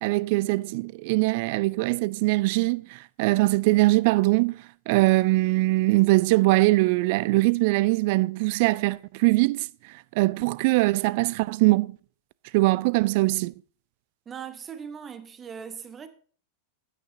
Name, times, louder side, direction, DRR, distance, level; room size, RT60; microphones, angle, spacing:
voice 1, 0.0-4.6 4.9-9.7 10.2-12.0 12.5-13.5, right 21 dB, 50° right, 0.4 m, -22 dB
voice 2, 14.3-16.1, right 7 dB, 20° right, 1.1 m, -39 dB
15.5 x 9.2 x 2.7 m
figure-of-eight pair, 90°, 0 cm